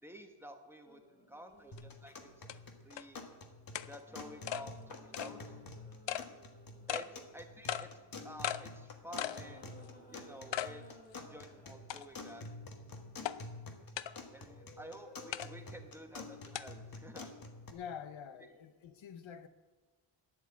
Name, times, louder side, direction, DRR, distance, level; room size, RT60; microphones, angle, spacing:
voice 1, 0.0-2.5 2.8-3.2 3.9-5.5 6.9-7.1 7.3-7.9 8.2-9.7 10.1-12.4 14.3-17.3, equal, 5° right, 1.3 m, -51 dB
sound 1, 0.8-3.0 4.0-8.3 9.0-12.0 14.3-15.9 17.1-17.3, equal, 20° left, 2.3 m, -60 dB
sound 2, 1.7-17.7, left 3 dB, 50° left, 1.5 m, -49 dB
sound 3, 1.8-1.9 2.5-2.6 3.0-3.1 3.7-3.9 4.5-4.6 5.1-5.3 6.1-6.3 6.9-7.1 7.7-7.9 8.4-8.6 9.2-9.4 9.8-9.9 10.5-10.7 11.2-11.3 11.9-12.3 13.2-13.4 14.0-14.1 15.3-15.5 16.5-16.6, left 11 dB, 70° left, 0.6 m, -37 dB
voice 2, 17.7-19.5, left 8 dB, 85° left, 0.9 m, -47 dB
11.5 x 9.9 x 8.4 m
wide cardioid pair, 145°, 45 cm